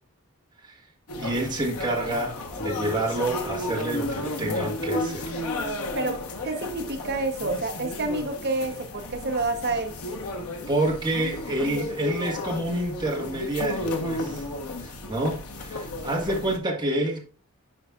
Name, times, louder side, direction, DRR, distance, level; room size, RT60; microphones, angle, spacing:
sound 1, 1.1-16.6, left 1 dB, 90° left, 1.2 m, -33 dB
voice 1, 1.2-5.3 10.7-14.4 14.8-17.2, right 1 dB, 20° right, -1 dB, 1.7 m, -28 dB
voice 2, 6.4-9.9, right 2 dB, 50° right, 5 dB, 0.9 m, -28 dB
10.0 x 5.4 x 2.5 m, 0.40 s
head